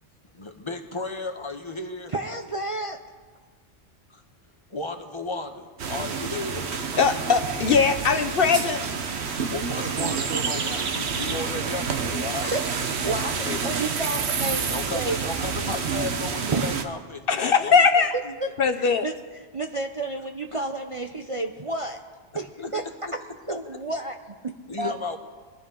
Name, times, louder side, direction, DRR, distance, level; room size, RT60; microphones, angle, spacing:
voice 1, 0.4-2.1 4.1-4.2 4.7-6.7 9.3-12.5 13.4-13.7 14.7-18.3 20.5-20.7 22.6-22.7 23.0-23.1 23.5-23.8 24.7-25.2, left 3 dB, 25° left, 6 dB, 1.0 m, -34 dB
voice 2, 2.1-3.0 12.4-15.2 16.5-16.7 18.1-19.1 19.5-22.0 22.4-22.8 23.1-23.2 23.5-24.2 24.4-24.9, right 2 dB, 35° right, 4 dB, 0.6 m, -31 dB
sound 1, 5.8-16.8, right 5 dB, 70° right, 1.2 m, -28 dB
voice 3, 7.0-8.8 13.5-13.6 17.3-18.1 18.6-19.0, left 5 dB, 60° left, 7 dB, 0.8 m, -20 dB
22.0 x 12.5 x 3.8 m, 1.5 s
omnidirectional pair, 1.2 m